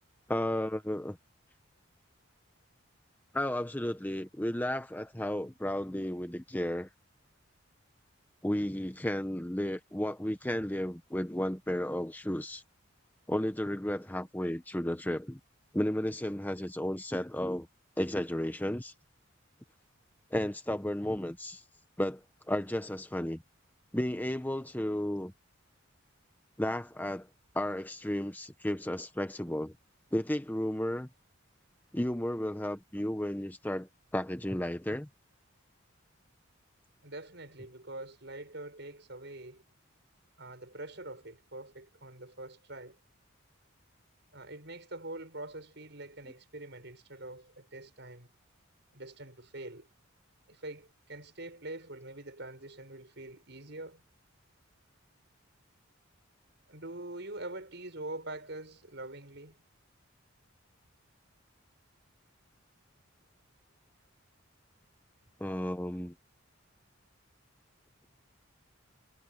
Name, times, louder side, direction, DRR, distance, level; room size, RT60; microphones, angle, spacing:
voice 1, 0.3-1.2 3.3-6.9 8.4-12.6 13.3-15.4 15.7-17.7 18.0-18.9 20.3-21.6 22.0-23.4 23.9-25.3 26.6-27.3 27.5-29.7 30.1-31.1 31.9-35.1 65.4-66.1, left 1 dB, 10° left, 0.9 m, -33 dB
voice 2, 37.0-39.6 40.4-43.0 44.3-48.3 48.9-49.9 50.5-54.0 56.7-59.6, right 2 dB, 60° right, 7.1 m, -44 dB
head